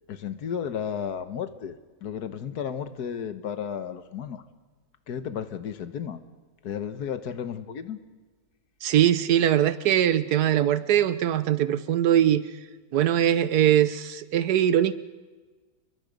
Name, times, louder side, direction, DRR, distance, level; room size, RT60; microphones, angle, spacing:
voice 1, 0.1-4.4 5.1-6.2 6.6-8.0, left 8 dB, 85° left, 10 dB, 1.7 m, -33 dB
voice 2, 8.8-12.4 12.9-14.9, right 10 dB, 80° right, 14 dB, 1.4 m, -21 dB
29.0 x 22.0 x 5.2 m, 1.3 s
omnidirectional pair, 1.6 m